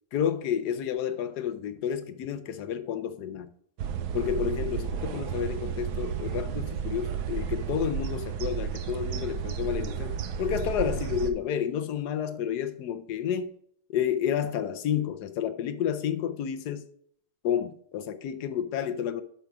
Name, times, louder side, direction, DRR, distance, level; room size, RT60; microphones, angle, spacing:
voice 1, 0.1-3.5 4.1-13.6 13.9-16.8 17.4-19.2, left 9 dB, 70° left, 1.2 m, -30 dB
sound 1, 3.8-11.3, right 8 dB, 70° right, 1.2 m, -32 dB
11.5 x 5.7 x 3.5 m
omnidirectional pair, 2.0 m